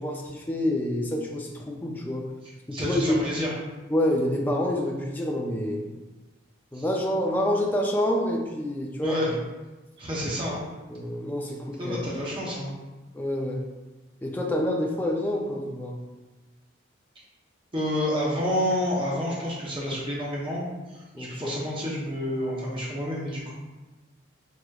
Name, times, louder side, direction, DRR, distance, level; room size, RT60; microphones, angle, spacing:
voice 1, 0.0-2.3 2.7-3.3 3.9-5.9 6.7-9.2 10.9-12.0 13.1-13.6 14.2-16.0 21.1-21.6, left 1 dB, 10° left, -1 dB, 0.4 m, -27 dB
voice 2, 2.7-3.5 6.7-6.8 9.0-9.3 10.0-10.6 11.8-12.7 17.7-20.6 20.9-23.5, equal, 25° right, -5 dB, 0.9 m, -29 dB
4.8 x 2.9 x 2.3 m, 1.2 s
head